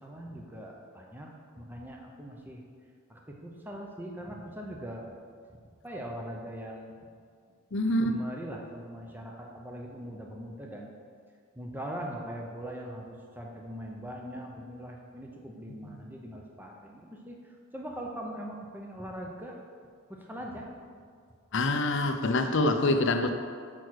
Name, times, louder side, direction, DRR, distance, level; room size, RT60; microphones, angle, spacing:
voice 1, 0.0-2.6 3.1-5.1 5.5-7.1 8.0-10.9 11.5-19.6 20.1-20.7, equal, 10° right, 0 dB, 0.7 m, -41 dB
voice 2, 7.7-8.2 21.5-23.3, left 2 dB, 55° left, 6 dB, 0.6 m, -25 dB
6.3 x 5.9 x 6.4 m, 2.1 s
head